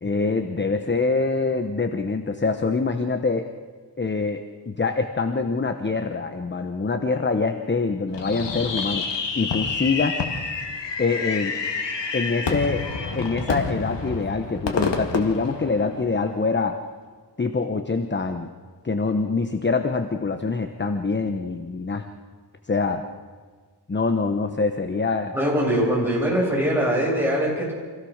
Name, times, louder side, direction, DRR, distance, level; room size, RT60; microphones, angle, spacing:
voice 1, 0.0-3.5 4.0-9.1 9.3-10.2 11.0-11.6 12.1-12.8 13.1-16.8 17.4-18.5 18.8-22.1 22.7-23.0 23.9-25.3, left 4 dB, 25° left, 7 dB, 1.0 m, -25 dB
Fireworks, 8.1-16.3, left 4 dB, 85° left, 2.0 m, -28 dB
voice 2, 25.3-27.7, equal, 5° right, -4 dB, 7.7 m, -22 dB
26.0 x 16.5 x 6.5 m, 1.6 s
wide cardioid pair, 135°, 42 cm